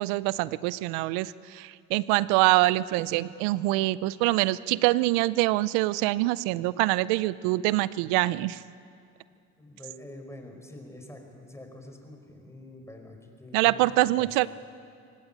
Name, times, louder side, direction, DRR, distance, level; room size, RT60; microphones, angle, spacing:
voice 1, 0.0-8.6 13.5-14.5, right 18 dB, 85° right, 18 dB, 0.5 m, -25 dB
voice 2, 9.6-14.3, left 1 dB, 10° left, 3 dB, 5.4 m, -46 dB
24.5 x 17.5 x 8.8 m, 2.4 s
supercardioid pair, 70°, 35 cm